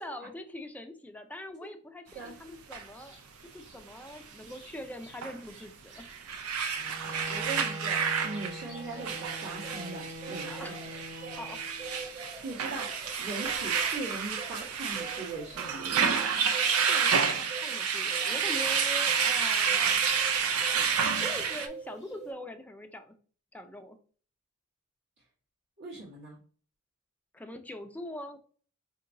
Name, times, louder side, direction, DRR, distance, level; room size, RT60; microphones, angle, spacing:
voice 1, 0.0-3.2 3.5-6.0 10.5-10.8 11.4-11.6 16.8-20.0 21.2-23.2 23.5-24.0 27.3-28.4, equal, 5° left, 6 dB, 0.4 m, -43 dB
sound 1, 2.7-2.8 5.2-5.4 6.0-21.7, right 6 dB, 80° right, 0.5 m, -29 dB
sound 2, 3.0-3.2 3.6-5.2 5.5-5.6 5.9-20.9 21.2-22.3, right 3 dB, 35° right, 1.3 m, -46 dB
Bowed string instrument, 6.8-12.1, equal, 15° right, 0.9 m, -43 dB
voice 2, 7.0-10.7 12.4-16.2 25.8-26.4, right 3 dB, 60° right, -9 dB, 1.3 m, -40 dB
4.6 x 2.8 x 2.6 m, 0.42 s
head